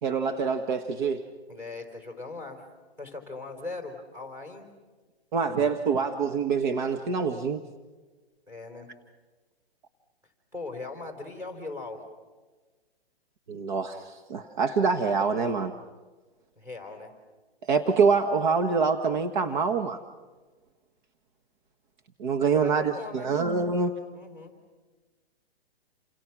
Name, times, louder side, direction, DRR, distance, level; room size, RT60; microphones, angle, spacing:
voice 1, 0.0-1.2 5.3-7.6 13.5-15.7 17.7-20.0 22.2-23.9, right 5 dB, 45° right, 6 dB, 1.7 m, -25 dB
voice 2, 1.5-2.6 3.0-4.7 8.5-8.9 10.5-12.0 16.6-17.1 22.4-23.3 24.1-24.5, left 3 dB, 10° right, 2 dB, 4.5 m, -39 dB
29.0 x 28.0 x 6.2 m, 1.3 s
hypercardioid pair, 145°, 32 cm